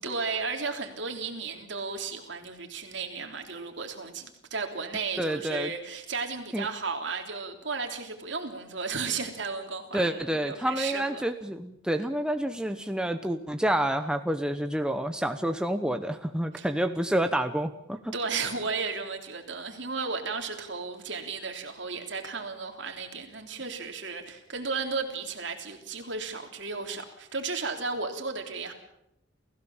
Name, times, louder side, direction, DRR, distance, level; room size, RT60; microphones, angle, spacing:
voice 1, 0.0-11.2 16.6-16.7 18.1-28.7, right 4 dB, 60° right, 4 dB, 3.4 m, -34 dB
voice 2, 5.2-5.7 6.5-6.7 9.9-18.1, right 1 dB, 5° right, 7 dB, 0.9 m, -28 dB
29.0 x 16.0 x 7.3 m, 0.82 s
head